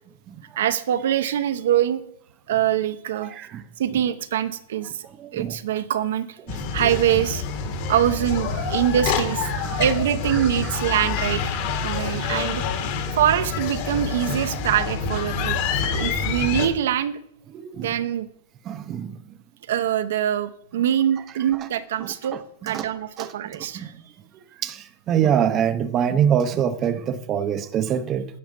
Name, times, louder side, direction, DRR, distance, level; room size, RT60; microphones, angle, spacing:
voice 1, 0.6-2.0 2.5-3.3 3.8-5.1 5.3-6.4 6.7-7.4 7.9-9.5 9.8-12.6 13.1-15.6 15.8-17.2 17.8-18.3 19.7-22.4 22.6-23.9, right 10 dB, 70° right, 0.7 m, -24 dB
voice 2, 3.2-3.6 5.2-5.5 9.5-9.8 10.4-10.8 17.5-17.9 18.7-19.2 22.3-22.4 22.7-22.9 23.2-23.3 23.6-24.0 24.6-28.3, right 8 dB, 25° right, 0.6 m, -25 dB
sound 1, 6.5-16.7, left 5 dB, 45° left, 1.4 m, -27 dB
9.6 x 7.0 x 5.3 m
supercardioid pair, 165°, 0 cm